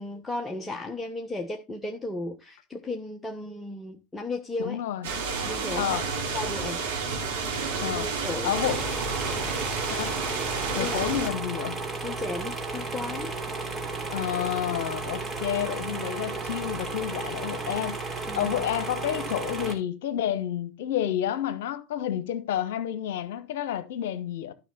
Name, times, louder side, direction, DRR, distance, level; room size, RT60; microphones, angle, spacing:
voice 1, 0.0-4.8 5.4-6.0 6.3-6.9 7.9-8.6 9.3-9.5 10.7-11.0 12.0-13.3 18.2-18.6, left 2 dB, 10° left, 1.1 m, -35 dB
voice 2, 4.6-5.1 5.7-6.1 7.8-8.1 8.4-8.8 9.9-10.2 10.7-11.8 14.1-24.5, left 10 dB, 60° left, 1.1 m, -30 dB
sound 1, 5.0-11.3, right 4 dB, 65° right, 3.7 m, -30 dB
sound 2, 8.5-19.7, right 3 dB, 15° right, 3.2 m, -34 dB
12.5 x 5.9 x 4.0 m
figure-of-eight pair, 80°, 0 cm